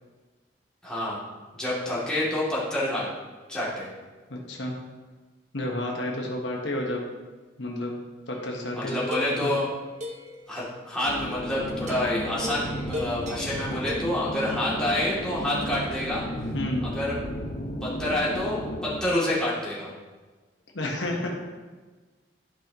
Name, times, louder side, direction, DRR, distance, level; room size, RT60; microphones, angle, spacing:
voice 1, 0.8-1.2 1.5-3.1 3.5-3.9 8.8-9.7 10.5-16.2 16.8-17.1 17.8-19.9, left 1 dB, 5° left, -9 dB, 2.6 m, -28 dB
voice 2, 4.3-4.8 5.5-7.0 7.6-7.9 8.3-9.0 9.4-9.5 14.5-14.6 16.5-16.8 20.7-21.3, left 1 dB, 90° left, 0 dB, 1.3 m, -30 dB
sound 1, 8.3-10.4 11.9-14.0, left 2 dB, 40° right, 0.8 m, -38 dB
sound 2, 11.0-19.0, equal, 45° left, 0.8 m, -34 dB
12.5 x 5.3 x 3.0 m, 1.3 s
head